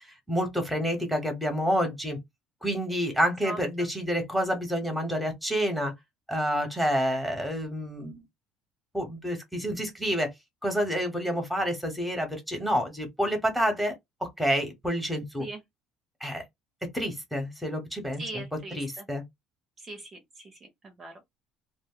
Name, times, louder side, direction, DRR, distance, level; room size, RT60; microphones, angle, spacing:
voice 1, 0.0-2.2 2.6-5.9 6.3-8.1 8.9-10.3 10.6-13.9 14.2-15.5 16.2-16.4 16.9-19.2, equal, ahead, 1.0 m, -28 dB
voice 2, 18.2-18.8 19.8-21.3, right 2 dB, 25° right, 0.7 m, -40 dB
2.5 x 2.1 x 3.7 m
cardioid pair, 145°, 0 cm